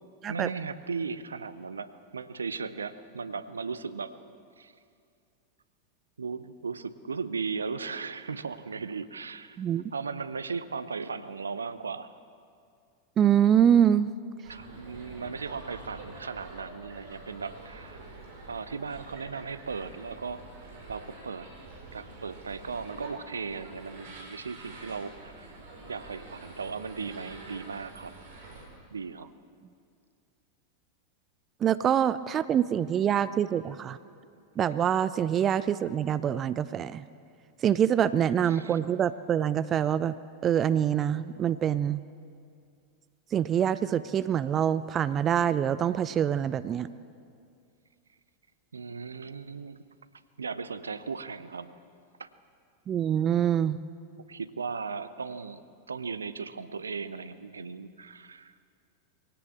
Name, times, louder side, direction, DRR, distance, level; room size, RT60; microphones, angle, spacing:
voice 1, 0.3-4.1 4.6-4.7 6.2-9.6 9.9-12.2 14.5-18.0 18.5-20.4 20.9-21.5 21.9-25.6 25.9-28.1 28.9-29.3 38.5-38.8 48.7-49.8 50.4-51.7 52.2-52.3 54.3-58.5, right 5 dB, 75° right, 14 dB, 0.8 m, -37 dB
voice 2, 13.2-14.1 31.6-34.0 34.6-37.0 37.6-40.1 40.4-42.0 43.3-46.9 52.9-53.8, right 9 dB, 25° right, 15 dB, 0.5 m, -25 dB
sound 1, 14.4-28.6, right 2 dB, 55° right, 5.0 m, -47 dB
22.5 x 17.0 x 7.4 m, 2.3 s
figure-of-eight pair, 90°, 0 cm